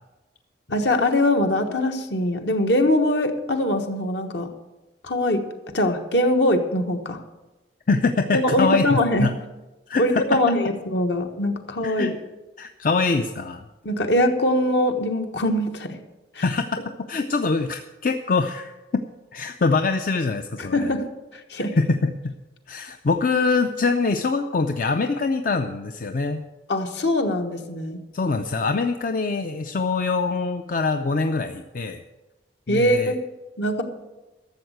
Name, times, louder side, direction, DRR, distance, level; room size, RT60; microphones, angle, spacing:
voice 1, 0.7-4.5 5.0-5.4 5.7-7.2 8.3-9.3 10.0-12.1 13.8-16.0 16.3-16.4 20.7-21.1 21.5-21.8 26.7-28.0 32.7-33.2 33.6-33.8, left 1 dB, 65° left, 5 dB, 1.3 m, -22 dB
voice 2, 7.9-9.3 9.9-10.0 10.3-10.4 11.8-12.1 12.6-13.6 16.4-16.8 17.1-19.0 19.3-20.9 21.6-22.3 22.7-26.4 28.1-32.0 32.7-33.1, left 4 dB, 45° left, 7 dB, 0.5 m, -24 dB
12.5 x 7.3 x 7.9 m, 1.1 s
head